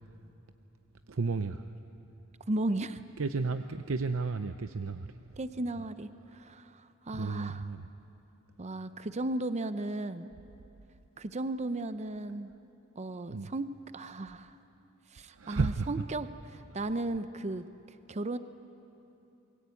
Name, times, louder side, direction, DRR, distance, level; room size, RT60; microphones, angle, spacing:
voice 1, 1.1-1.7 3.2-5.4 7.1-7.9 13.3-13.5 15.3-15.9, right 4 dB, 70° right, 9 dB, 0.7 m, -33 dB
voice 2, 2.5-3.0 5.4-7.6 8.6-10.3 11.2-12.5 13.0-13.7 13.9-14.6 15.1-16.3 16.5-18.4, right 2 dB, 35° right, 11 dB, 0.6 m, -35 dB
28.0 x 22.5 x 8.4 m, 2.9 s
head